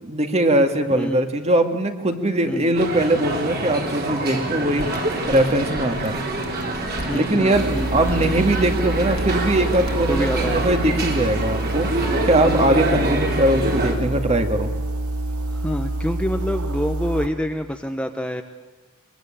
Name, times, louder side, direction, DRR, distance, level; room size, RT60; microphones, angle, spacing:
voice 1, 0.0-4.9 5.3-6.2 7.1-14.7, right 1 dB, 30° right, 6 dB, 2.0 m, -21 dB
sound 1, 2.7-13.9, right 2 dB, 45° right, 3.8 m, -26 dB
sound 2, 4.8-10.8, left 1 dB, 65° left, 2.5 m, -37 dB
voice 2, 7.1-8.0 10.1-10.7 12.0-12.4 15.5-18.4, equal, 5° left, 5 dB, 1.0 m, -27 dB
sound 3, 7.5-17.3, right 1 dB, 90° right, 2.1 m, -27 dB
23.5 x 23.0 x 9.0 m, 1.2 s
head